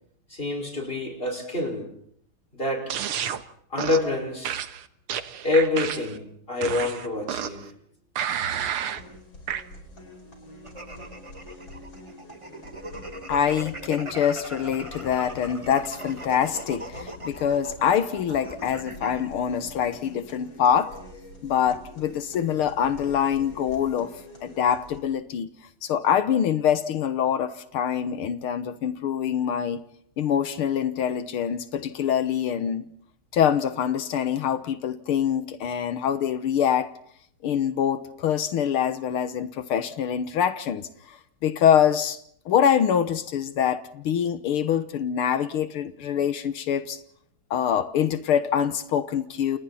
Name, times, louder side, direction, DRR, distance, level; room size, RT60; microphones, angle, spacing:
voice 1, 0.3-1.9 2.5-2.9 3.7-4.6 5.4-7.7 8.6-8.7, left 2 dB, 25° left, 5.7 m, -27 dB
sound 1, 2.9-3.4 3.8-4.1 4.4-6.2 6.6-7.7 8.2-9.0 9.5-9.6, right 9 dB, 90° right, 2.1 m, -30 dB
sound 2, 9.0-25.0, left 1 dB, 65° left, 6.2 m, -45 dB
sound 3, 10.6-19.3, right 2 dB, 15° right, 1.4 m, -40 dB
voice 2, 13.3-20.9 21.4-24.1 24.4-25.5 25.8-29.8 30.2-32.8 33.3-36.9 37.4-40.9 41.4-42.2 42.5-47.0 47.5-49.6, left 8 dB, 80° left, 2.1 m, -24 dB
29.5 x 29.5 x 4.2 m
omnidirectional pair, 2.3 m